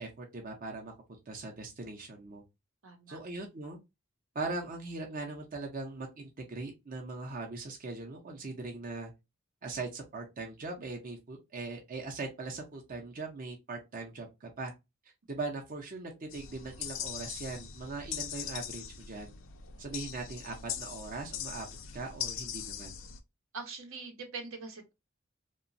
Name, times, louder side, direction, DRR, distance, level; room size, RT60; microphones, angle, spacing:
voice 1, 0.0-2.4 3.1-3.8 4.3-9.1 9.6-14.7 15.3-19.3 19.8-21.7 21.9-22.9, right 3 dB, 45° right, 0.6 m, -40 dB
voice 2, 2.8-3.2 22.6-22.7 23.5-24.9, right 4 dB, 75° right, 0.8 m, -43 dB
sound 1, 16.3-23.2, left 8 dB, 65° left, 0.4 m, -41 dB
2.9 x 2.2 x 2.5 m
head